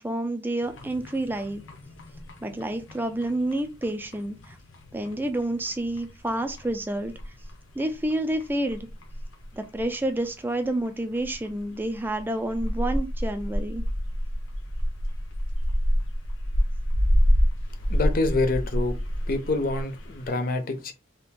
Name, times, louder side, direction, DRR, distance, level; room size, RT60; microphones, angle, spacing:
voice 1, 0.0-1.6 2.4-4.6 4.9-7.1 7.8-8.9 9.5-13.8, right 1 dB, 10° right, 0.3 m, -29 dB
sound 1, 0.6-20.3, equal, 90° left, 0.8 m, -29 dB
voice 2, 17.9-19.0 19.3-20.9, left 2 dB, 45° left, 0.6 m, -26 dB
2.9 x 2.4 x 3.5 m
head